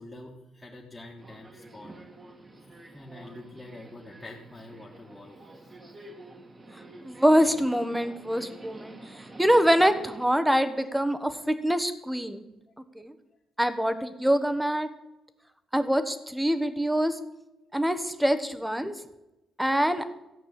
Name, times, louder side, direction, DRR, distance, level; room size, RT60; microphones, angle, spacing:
voice 1, 0.0-1.9 2.6-5.8 10.8-10.9, left 2 dB, 15° left, -4 dB, 1.9 m, -46 dB
Subway metro underground, 1.2-10.3, right 2 dB, 25° right, 1.8 m, -48 dB
voice 2, 7.0-12.4 12.9-13.1 13.6-14.9 15.7-17.2 17.7-18.9 19.6-20.0, equal, 5° right, 10 dB, 1.2 m, -25 dB
14.5 x 5.3 x 8.8 m, 0.97 s
cardioid pair, 90°, 0 cm